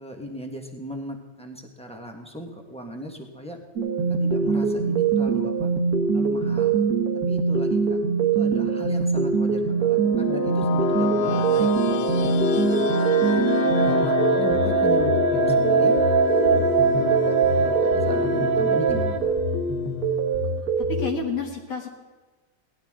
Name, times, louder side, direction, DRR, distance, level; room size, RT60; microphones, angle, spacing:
voice 1, 0.0-3.6 4.1-5.7 6.1-6.7 7.3-13.1 13.6-15.9 16.5-19.3, equal, 5° left, 1 dB, 1.2 m, -38 dB
fm stuff for film waiting around, 3.8-21.1, right 5 dB, 55° right, 2.0 m, -24 dB
sound 1, 9.8-20.6, left 11 dB, 70° left, 1.0 m, -28 dB
sound 2, 10.8-19.2, right 6 dB, 70° right, 1.4 m, -24 dB
voice 2, 20.6-21.9, left 4 dB, 50° left, 1 dB, 1.7 m, -30 dB
18.5 x 12.5 x 3.7 m, 1.3 s
omnidirectional pair, 1.9 m